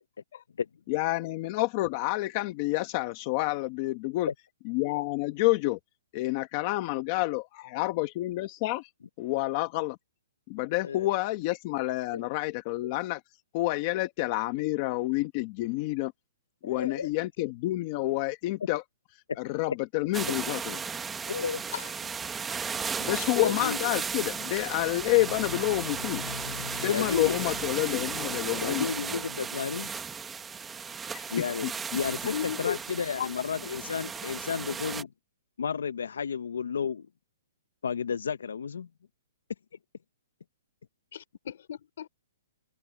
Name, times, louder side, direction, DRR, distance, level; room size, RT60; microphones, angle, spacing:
voice 1, 0.9-4.3 4.7-5.8 6.1-8.9 9.2-10.0 10.5-13.2 13.5-16.1 16.6-18.8 19.4-20.8 23.0-26.2 26.8-28.9 31.1-31.3 31.6-31.7, left 19 dB, 25° left, 1.1 m, -29 dB
voice 2, 16.6-17.1 21.3-21.6 23.4-23.8 26.9-27.4 28.6-29.9 31.3-35.1 35.6-37.1 37.8-38.9, left 6 dB, 80° left, 0.7 m, -32 dB
sound 1, 20.1-35.0, right 6 dB, 5° right, 1.1 m, -35 dB
voice 3, 21.7-22.1 32.3-32.8 33.1-33.3 41.1-42.1, left 9 dB, 45° left, 3.7 m, -35 dB
sound 2, 24.5-29.8, left 7 dB, 60° left, 7.3 m, -43 dB
hypercardioid pair, 180°, 0 cm